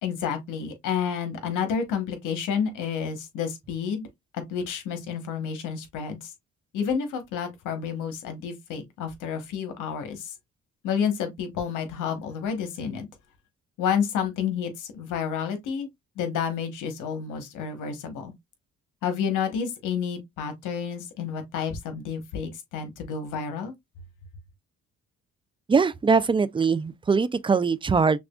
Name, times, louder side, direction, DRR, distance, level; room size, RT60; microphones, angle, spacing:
voice 1, 0.0-4.1 4.3-6.3 6.7-10.3 10.8-13.1 13.8-15.9 16.2-18.3 19.0-23.7, left 7 dB, 90° left, 1.2 m, -30 dB
voice 2, 25.7-28.2, right 5 dB, 15° right, 0.3 m, -22 dB
6.0 x 2.4 x 2.3 m
cardioid pair, 90°, 30 cm